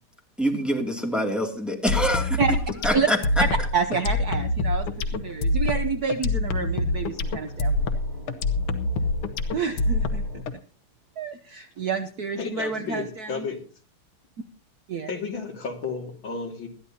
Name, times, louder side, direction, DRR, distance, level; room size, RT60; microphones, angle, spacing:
voice 1, 0.4-2.4 2.8-3.2, equal, ahead, 1 dB, 2.3 m, -25 dB
sound 1, 1.7-10.4, equal, 30° right, 2.2 m, -43 dB
sound 2, 1.9-10.5, left 2 dB, 85° left, 2.0 m, -25 dB
voice 2, 3.7-8.0 9.5-10.4 11.2-13.5 14.9-15.1, right 5 dB, 60° right, 8 dB, 1.1 m, -28 dB
voice 3, 12.4-13.6 15.1-16.7, left 5 dB, 65° left, 2 dB, 3.1 m, -32 dB
20.5 x 13.5 x 2.8 m, 0.39 s
omnidirectional pair, 2.4 m